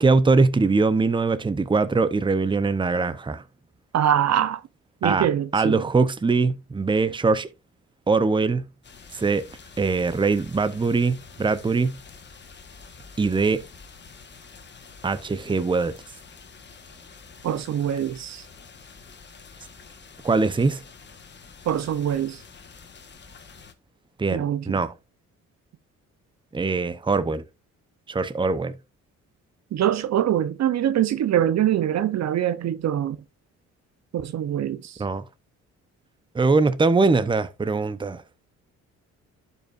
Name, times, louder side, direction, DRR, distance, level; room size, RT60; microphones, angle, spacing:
voice 1, 0.0-3.4 5.0-5.3 5.5-7.5 8.1-8.7 9.1-9.5 9.8-12.0 13.2-13.6 15.0-16.0 20.2-20.8 24.2-24.9 26.5-27.4 28.1-28.8 35.0-35.2 36.3-38.2, right 4 dB, 15° right, 0.8 m, -22 dB
voice 2, 3.9-4.6 5.0-5.8 17.4-18.5 21.6-22.4 24.3-24.8 29.7-33.2 34.1-35.0, right 10 dB, 60° right, 0.8 m, -24 dB
sound 1, 8.8-23.7, left 5 dB, 35° left, 1.4 m, -47 dB
12.0 x 5.5 x 2.5 m
cardioid pair, 90°, 30 cm